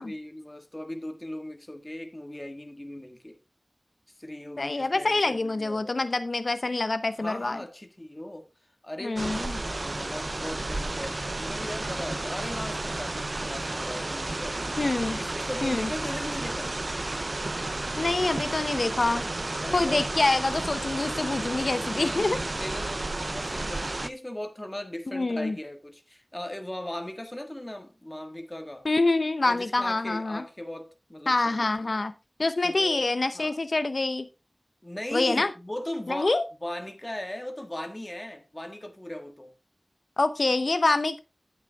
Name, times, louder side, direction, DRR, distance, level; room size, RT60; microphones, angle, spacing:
voice 1, 0.0-3.4 4.1-6.1 7.2-8.5 8.8-14.7 15.2-16.7 19.6-20.2 21.3-28.9 29.4-31.9 32.6-33.1 33.3-33.6 34.8-39.5, left 1 dB, 25° left, 1.6 m, -38 dB
voice 2, 4.6-7.6 9.0-9.6 14.8-15.2 15.6-15.9 18.0-19.3 19.7-22.4 25.1-25.6 28.8-30.4 31.3-32.1 32.4-34.3 35.1-35.5 36.1-36.4 40.2-41.2, left 2 dB, 75° left, 0.7 m, -26 dB
sound 1, 9.2-24.1, right 2 dB, 60° right, 0.5 m, -32 dB
9.6 x 8.7 x 3.5 m
wide cardioid pair, 45°, 0 cm